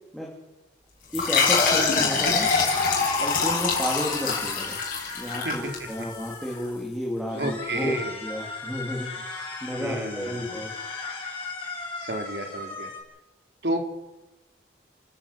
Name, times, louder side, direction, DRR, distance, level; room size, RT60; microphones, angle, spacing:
sound 1, 1.1-6.3, left 4 dB, 45° left, 6.2 m, -24 dB
voice 1, 1.1-2.5 3.2-4.8 5.1-8.0 8.2-10.7, equal, ahead, -3 dB, 3.5 m, -32 dB
sound 2, 2.3-6.8 7.3-13.0, left 3 dB, 30° left, 5.9 m, -37 dB
voice 2, 7.3-8.2 9.8-10.5 12.0-12.9 13.6-13.8, right 1 dB, 65° right, 4 dB, 3.4 m, -30 dB
29.5 x 12.0 x 8.6 m, 1.0 s
head